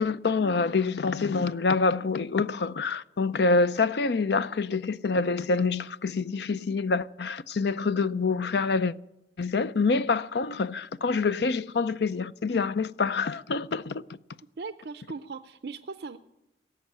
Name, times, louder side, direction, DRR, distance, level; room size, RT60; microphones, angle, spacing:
voice 1, 0.0-8.9 9.4-14.0, left 4 dB, 65° left, 0.5 m, -26 dB
voice 2, 14.6-16.2, right 4 dB, 65° right, 0.5 m, -38 dB
17.0 x 7.2 x 10.0 m
head